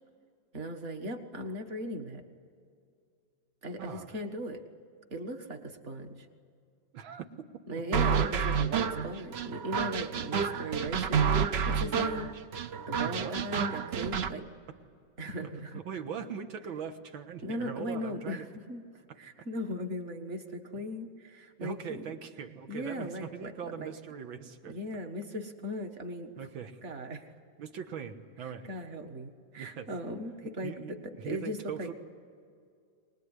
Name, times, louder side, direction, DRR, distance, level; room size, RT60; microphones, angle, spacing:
voice 1, 0.5-2.2 3.6-4.6 5.1-6.3 7.7-12.3 12.9-14.4 15.2-15.8 17.4-18.8 19.2-22.0 22.7-23.9 24.7-26.3 26.8-27.3 28.6-31.9, equal, 40° right, 5 dB, 1.8 m, -38 dB
voice 2, 3.8-4.2 6.9-8.2 12.9-13.4 13.8-14.1 15.4-18.5 19.1-19.2 20.8-20.9 21.6-24.8 26.4-26.8 27.6-28.7 29.5-29.9 30.6-31.9, right 7 dB, 90° right, 7 dB, 2.1 m, -41 dB
sound 1, 7.9-14.3, right 6 dB, 70° right, 0.6 m, -29 dB
24.0 x 20.0 x 9.7 m, 2.3 s
omnidirectional pair, 2.1 m